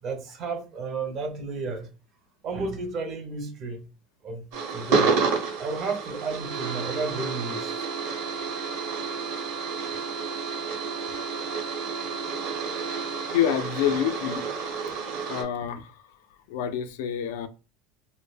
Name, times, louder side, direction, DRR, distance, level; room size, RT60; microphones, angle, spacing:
voice 1, 0.0-1.9 2.4-3.9 4.2-5.2 5.6-7.9, right 3 dB, 35° right, 0.5 m, -32 dB
sound 1, 4.5-15.4, right 5 dB, 60° right, 0.8 m, -30 dB
voice 2, 13.3-14.4 15.3-15.9 16.5-17.5, left 10 dB, 80° left, 0.3 m, -27 dB
2.1 x 2.0 x 3.2 m
cardioid pair, 165°, 0 cm